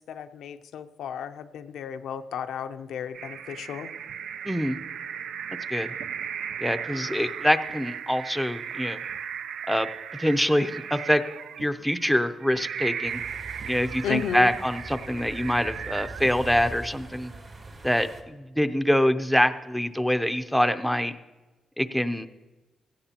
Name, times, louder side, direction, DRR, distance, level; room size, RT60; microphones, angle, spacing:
voice 1, 0.1-3.9 14.0-14.5, left 8 dB, 90° left, 8 dB, 0.5 m, -34 dB
sound 1, 3.1-16.7, right 8 dB, 80° right, 0.4 m, -36 dB
voice 2, 4.4-4.8 5.7-5.9 6.6-9.0 9.7-11.2 11.6-13.2 13.6-17.3 17.8-21.1 21.8-22.3, equal, ahead, 8 dB, 0.6 m, -25 dB
sound 2, 13.0-18.2, right 2 dB, 45° right, 1.9 m, -42 dB
17.0 x 14.5 x 2.9 m, 1.2 s
cardioid pair, 105°, 0 cm